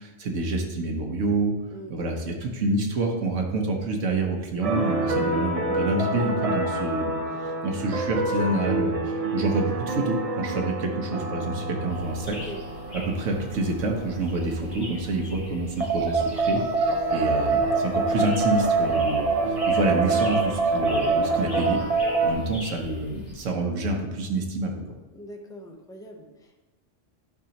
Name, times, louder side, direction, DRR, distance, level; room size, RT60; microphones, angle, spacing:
voice 1, 0.0-1.5 1.9-7.1 7.6-12.4 12.9-19.3 19.7-21.8 22.2-24.8, right 2 dB, 80° right, 1 dB, 1.4 m, -27 dB
sound 1, 4.6-22.3, right 3 dB, 35° right, 0.6 m, -26 dB
sound 2, 11.9-23.5, left 1 dB, 65° left, 2.8 m, -43 dB
voice 2, 12.2-12.6 14.4-14.8 25.1-26.6, equal, 5° left, 1 dB, 0.6 m, -43 dB
11.0 x 5.1 x 2.9 m, 1.1 s
omnidirectional pair, 1.3 m